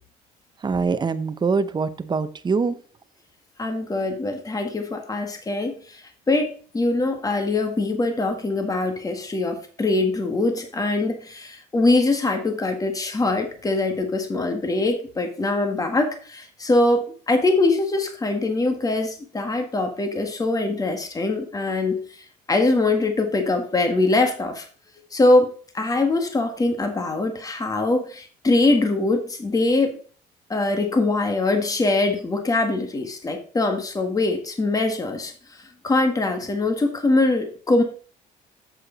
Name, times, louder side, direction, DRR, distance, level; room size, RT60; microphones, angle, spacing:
voice 1, 0.6-2.8, right 4 dB, 25° right, 12 dB, 0.7 m, -23 dB
voice 2, 3.6-6.0 6.3-22.0 22.5-24.6 25.1-29.9 30.5-35.3 35.8-37.8, left 2 dB, 20° left, 5 dB, 1.7 m, -22 dB
7.8 x 7.7 x 3.9 m, 0.41 s
cardioid pair, 110°, 17 cm